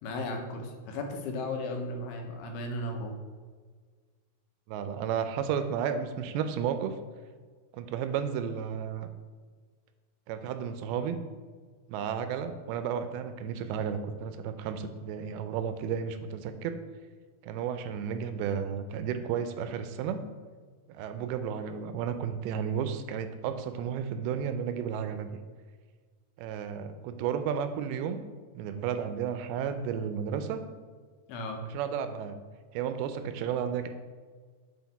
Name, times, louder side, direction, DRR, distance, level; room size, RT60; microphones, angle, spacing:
voice 1, 0.0-3.2 31.3-31.6, left 2 dB, 90° left, 3 dB, 2.8 m, -35 dB
voice 2, 4.7-7.0 7.7-9.1 10.3-11.2 11.9-16.7 17.4-20.2 20.9-25.3 26.4-28.2 28.5-30.6 31.6-32.4 32.7-33.9, right 7 dB, 85° right, 9 dB, 2.4 m, -33 dB
7.8 x 4.4 x 4.1 m, 1.5 s
omnidirectional pair, 4.5 m